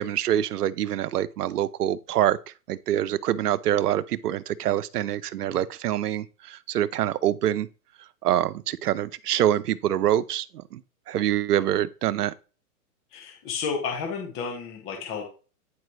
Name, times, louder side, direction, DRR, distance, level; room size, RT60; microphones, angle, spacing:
voice 1, 0.0-2.4 2.7-7.7 8.2-10.8 11.1-12.3, right 12 dB, 85° right, 0.6 m, -25 dB
voice 2, 13.1-15.2, left 5 dB, 25° left, 1.4 m, -32 dB
9.6 x 4.7 x 3.2 m
hypercardioid pair, 145°, 45 cm